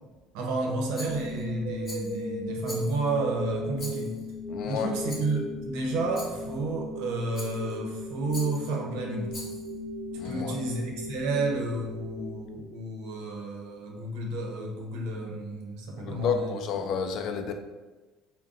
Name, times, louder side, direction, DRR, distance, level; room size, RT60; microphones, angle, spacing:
voice 1, 0.3-4.2 4.6-9.3 10.2-16.6, right 2 dB, 85° right, 0 dB, 0.8 m, -31 dB
Rattle, 0.9-1.4 1.8-2.2 2.6-3.2 3.8-4.3 5.1-5.4 6.1-6.5 7.3-7.8 8.3-8.7 9.3-9.8, left 2 dB, 30° left, 1.0 m, -43 dB
sound 1, 1.1-13.1, left 1 dB, 40° right, 0.6 m, -37 dB
voice 2, 4.5-4.9 10.2-10.6 16.0-17.5, left 6 dB, 55° left, 6 dB, 0.3 m, -30 dB
3.6 x 2.2 x 3.9 m, 1.2 s
cardioid pair, 130°, 0 cm